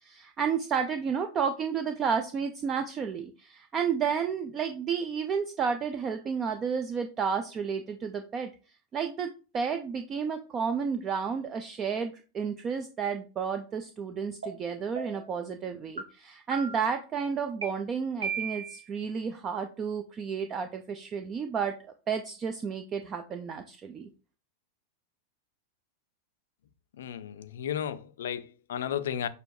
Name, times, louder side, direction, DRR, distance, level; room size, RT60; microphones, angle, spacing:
voice 1, 0.0-8.5 8.9-21.7 22.1-24.1, right 6 dB, 25° right, 0.3 m, -31 dB
sound 1, 14.4-14.5 15.0-15.3 16.0-16.1 16.5-17.0 17.6-17.7 18.2-18.8, right 5 dB, 75° right, 0.8 m, -35 dB
voice 2, 27.0-29.3, left 9 dB, 60° left, 0.4 m, -34 dB
6.6 x 2.2 x 2.6 m
figure-of-eight pair, 90°, 0 cm